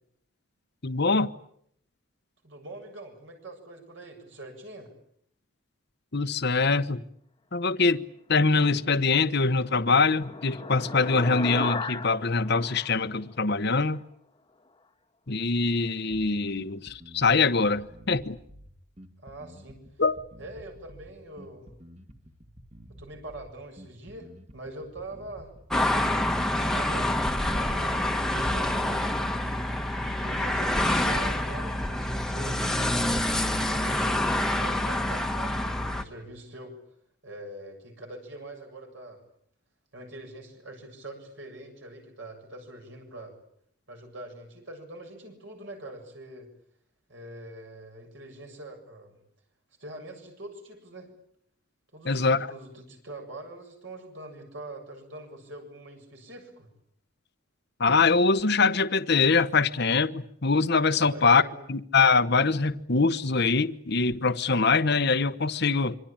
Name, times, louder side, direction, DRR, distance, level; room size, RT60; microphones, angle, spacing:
voice 1, 0.8-1.3 6.1-7.0 7.5-8.0 8.3-14.0 15.3-18.4 20.0-20.2 52.1-52.4 57.8-61.4 61.7-66.0, left 4 dB, 50° left, 1.1 m, -23 dB
voice 2, 2.4-4.9 19.2-19.8 20.4-21.7 23.0-25.5 26.6-29.0 29.9-32.6 33.6-36.8 37.2-39.2 39.9-43.3 43.9-46.5 47.1-49.2 49.8-51.1 51.9-56.7 61.0-61.7, right 1 dB, 60° right, 7.4 m, -43 dB
sound 1, 9.3-13.9, left 3 dB, 25° left, 1.6 m, -37 dB
Bass guitar, 16.1-25.7, equal, 30° right, 2.3 m, -50 dB
sound 2, 25.7-36.0, left 1 dB, ahead, 1.5 m, -27 dB
26.5 x 25.0 x 8.9 m
head